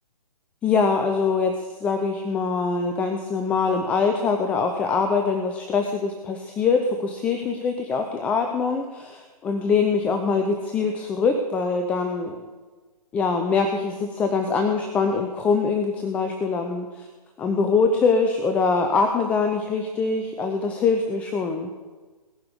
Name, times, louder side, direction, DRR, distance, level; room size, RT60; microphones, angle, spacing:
voice 1, 0.6-12.5 13.1-16.9 17.4-21.7, left 4 dB, 5° left, 5 dB, 0.5 m, -23 dB
18.0 x 6.7 x 9.6 m, 1.4 s
figure-of-eight pair, 140°, 21 cm